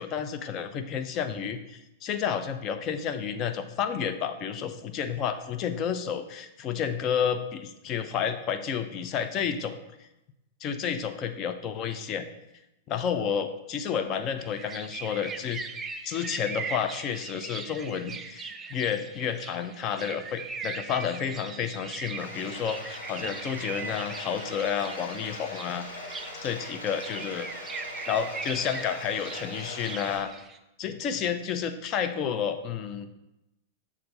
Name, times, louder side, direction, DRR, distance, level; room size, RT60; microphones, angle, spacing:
voice 1, 0.0-9.7 10.6-12.3 12.9-15.6 16.0-25.9 26.4-27.5 28.1-30.3 30.8-33.1, left 7 dB, 35° left, 8 dB, 0.6 m, -30 dB
sound 1, 14.4-30.6, right 4 dB, 20° right, 0.5 m, -40 dB
Bathtub (filling or washing), 22.2-30.2, left 2 dB, 70° left, 1.4 m, -41 dB
6.7 x 3.6 x 5.4 m, 0.91 s
figure-of-eight pair, 95°, 0 cm